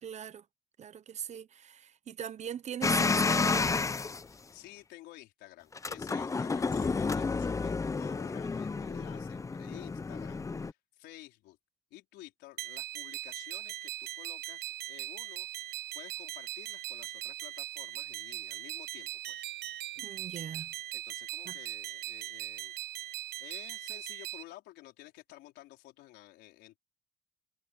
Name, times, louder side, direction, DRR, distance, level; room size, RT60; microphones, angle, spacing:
voice 1, 0.0-0.4 0.8-3.7 20.0-20.7 21.5-21.6, right 8 dB, 40° right, 0.9 m, -41 dB
sound 1, 2.8-4.2 5.7-10.7, left 4 dB, 20° left, 0.7 m, -31 dB
voice 2, 4.2-11.6 11.9-15.5 15.9-19.5 20.9-22.7 23.4-26.8, left 16 dB, 85° left, 4.5 m, -52 dB
sound 2, 12.6-24.4, right 14 dB, 75° right, 1.4 m, -40 dB
cardioid pair, 110°, 17 cm